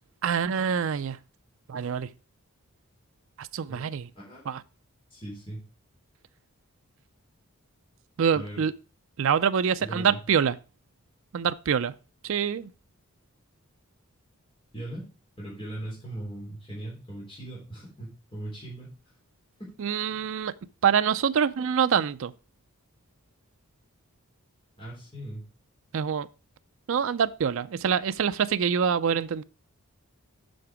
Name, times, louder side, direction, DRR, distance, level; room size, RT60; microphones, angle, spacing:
voice 1, 0.2-1.2 1.7-2.1 3.4-4.1 4.5-4.6 8.2-8.7 9.2-10.6 11.3-11.9 12.2-12.7 19.8-20.5 20.8-22.3 25.9-26.3 26.9-29.4, right 7 dB, 60° right, 0.4 m, -25 dB
voice 2, 5.1-5.6 8.3-8.6 9.8-10.2 14.7-15.1 15.4-19.0 20.1-20.2 24.8-25.4, right 1 dB, 25° left, 3.6 m, -39 dB
7.7 x 5.9 x 4.7 m
head